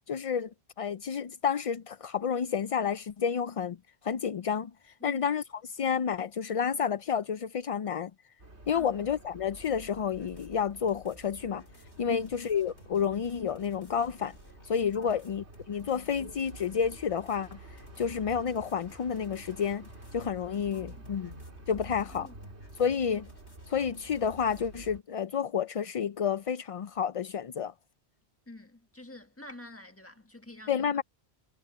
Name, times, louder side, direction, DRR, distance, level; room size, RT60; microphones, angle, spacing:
voice 1, 0.1-0.5 0.8-3.8 4.0-4.7 5.0-5.4 5.7-8.1 8.7-11.6 12.0-14.4 14.6-17.6 18.0-19.8 20.1-21.3 21.7-22.3 22.8-23.3 23.7-27.7 30.7-31.0, left 7 dB, 60° left, 0.3 m, -30 dB
sound 1, 8.4-25.0, right 2 dB, 90° right, 3.4 m, -50 dB
voice 2, 8.7-9.0 12.1-12.3 14.9-15.2 20.5-21.3 22.1-22.4 22.7-22.8 28.5-30.9, left 1 dB, 10° left, 1.6 m, -49 dB
sound 2, 10.1-24.9, left 1 dB, 85° left, 4.2 m, -56 dB
omnidirectional pair, 1.1 m